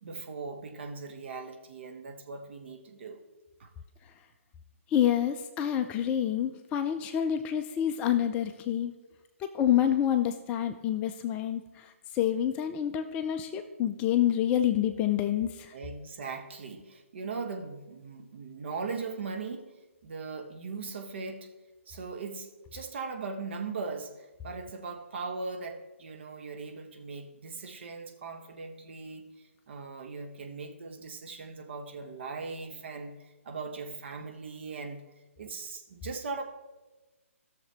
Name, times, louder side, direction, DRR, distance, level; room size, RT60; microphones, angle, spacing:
voice 1, 0.0-3.2 3.6-3.7 15.7-19.7 20.0-21.5 21.9-29.2 29.7-35.0 35.4-36.4, right 4 dB, 50° right, 4 dB, 1.3 m, -39 dB
voice 2, 4.9-8.9 9.4-15.7, left 10 dB, 15° left, 7 dB, 0.4 m, -28 dB
16.0 x 6.6 x 3.4 m, 1.2 s
figure-of-eight pair, 140°, 8 cm